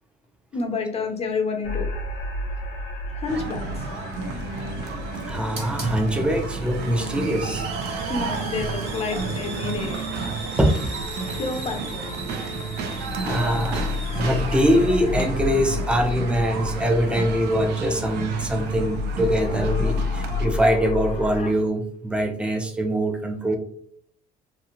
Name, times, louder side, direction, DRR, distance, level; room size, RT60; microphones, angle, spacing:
voice 1, 0.5-1.9 3.1-4.1 8.1-10.4 11.3-12.1, left 4 dB, 35° left, 4 dB, 0.6 m, -29 dB
sound 1, 1.6-21.5, left 4 dB, 60° left, 0.8 m, -33 dB
sound 2, 3.3-20.5, right 5 dB, 80° right, 0.5 m, -32 dB
Hiss, 3.7-21.6, right 2 dB, 40° right, 1.2 m, -39 dB
voice 2, 5.3-7.7 10.6-10.9 13.2-23.6, equal, 5° right, 4 dB, 0.5 m, -23 dB
3.0 x 2.7 x 2.4 m, 0.64 s
cardioid pair, 110°, 17 cm